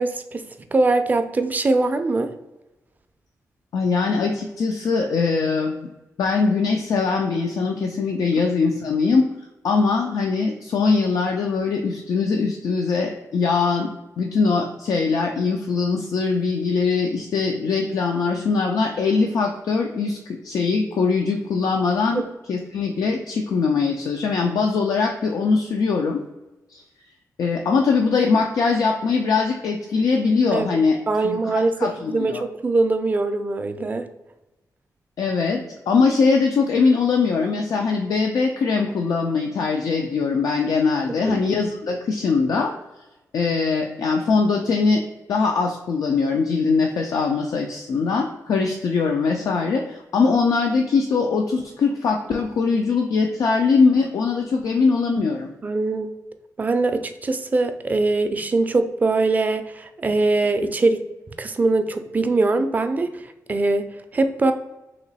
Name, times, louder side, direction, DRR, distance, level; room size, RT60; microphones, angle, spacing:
voice 1, 0.0-2.3 22.1-22.2 30.5-34.1 41.2-41.4 55.6-56.1 56.6-61.0 61.4-63.1 63.5-64.5, right 3 dB, 25° right, 8 dB, 0.4 m, -22 dB
voice 2, 3.7-5.8 6.2-9.3 9.6-13.9 14.2-22.2 22.5-26.2 26.7-26.8 27.4-32.4 35.2-42.7 43.3-45.0 45.3-55.5, left 4 dB, 70° left, 2 dB, 0.4 m, -21 dB
3.0 x 3.0 x 4.0 m, 1.0 s
wide cardioid pair, 125°, 6 cm